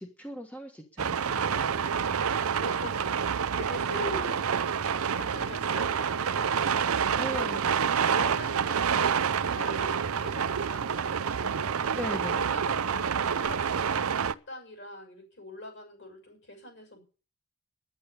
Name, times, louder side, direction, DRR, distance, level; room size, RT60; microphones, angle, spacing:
voice 1, 0.0-1.5 7.2-7.7 11.9-12.5, equal, 5° left, 2 dB, 1.3 m, -38 dB
sound 1, 1.0-14.3, right 7 dB, 80° right, 0.6 m, -28 dB
voice 2, 1.5-3.1 3.5-4.7 5.1-6.6 7.1-7.6 7.8-11.8 12.3-17.0, left 1 dB, 55° left, 4 dB, 6.5 m, -43 dB
10.5 x 10.0 x 8.3 m, 0.38 s
head